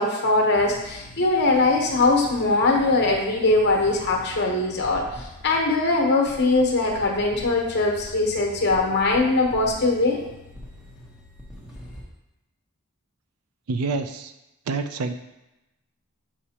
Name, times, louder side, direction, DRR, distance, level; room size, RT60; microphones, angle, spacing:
voice 1, 0.0-10.2, left 2 dB, 50° left, 0 dB, 1.1 m, -21 dB
sound 1, 0.5-12.0, left 1 dB, 5° right, 1.1 m, -43 dB
voice 2, 13.7-14.3 14.7-15.1, right 3 dB, 80° right, 9 dB, 0.5 m, -27 dB
7.1 x 4.9 x 2.9 m, 0.95 s
head